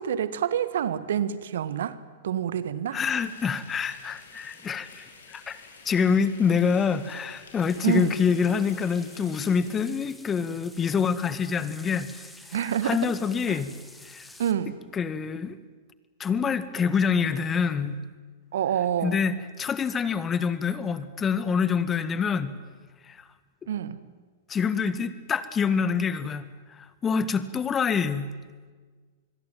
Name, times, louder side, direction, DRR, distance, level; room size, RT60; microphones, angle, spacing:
voice 1, 0.0-2.0 2.2-3.0 7.8-8.2 12.5-13.1 13.5-13.6 14.4-14.8 18.5-19.2 23.7-24.0, right 9 dB, 70° right, 15 dB, 1.6 m, -27 dB
voice 2, 2.9-12.3 12.8-13.7 14.0-14.3 14.9-15.6 16.2-18.0 19.0-22.5 23.1-23.2 24.5-26.5 26.8-28.3, left 6 dB, 20° left, 14 dB, 1.8 m, -26 dB
sound 1, 3.0-9.8, left 4 dB, 75° left, 6.3 m, -51 dB
sound 2, 7.6-14.5, left 1 dB, 5° left, 3.0 m, -50 dB
27.0 x 21.5 x 9.3 m, 1.5 s
hypercardioid pair, 105°, 0 cm